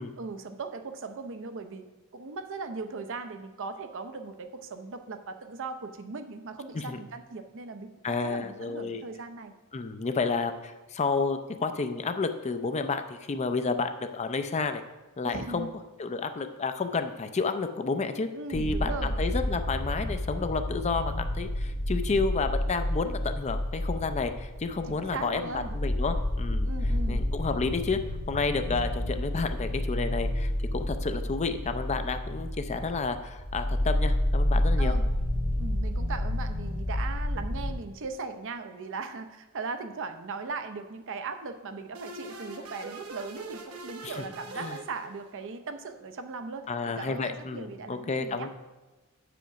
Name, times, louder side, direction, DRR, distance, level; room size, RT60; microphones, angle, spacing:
voice 1, 0.2-1.8 2.1-9.5 15.2-15.7 18.3-19.2 24.9-25.7 26.6-27.2 34.8-35.1 35.6-46.7 47.0-48.5, right 4 dB, 60° right, 8 dB, 0.6 m, -38 dB
voice 2, 8.0-9.0 9.7-14.8 15.2-15.7 16.0-26.7 27.1-28.0 28.3-35.0 44.0-44.1 44.6-44.8 46.7-48.5, left 4 dB, 30° left, 8 dB, 0.4 m, -31 dB
sound 1, 18.5-37.7, left 1 dB, 50° left, 1.1 m, -30 dB
sound 2, 41.9-45.5, right 3 dB, 75° right, 1.0 m, -43 dB
7.8 x 5.1 x 5.8 m, 1.2 s
head